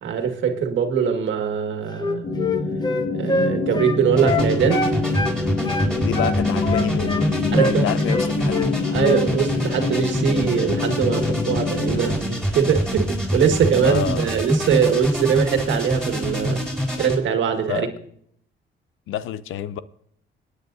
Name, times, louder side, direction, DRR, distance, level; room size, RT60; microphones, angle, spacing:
voice 1, 0.0-2.3 3.1-4.9 7.5-7.9 8.9-16.6 17.0-17.9, right 7 dB, 70° right, 1.9 m, -22 dB
Wind instrument woodwind instrument, 1.9-5.4 5.6-7.3 7.6-7.8 8.1-8.7 9.0-9.2, left 2 dB, 20° left, 1.2 m, -25 dB
sound 1, 2.2-12.2, left 3 dB, 40° left, 2.0 m, -25 dB
sound 2, 4.2-17.2, equal, 5° left, 4.6 m, -26 dB
voice 2, 6.0-8.9 13.8-14.2 17.7-17.9 19.1-19.8, left 10 dB, 85° left, 0.7 m, -28 dB
26.0 x 9.7 x 2.7 m
cardioid pair, 90°, 20 cm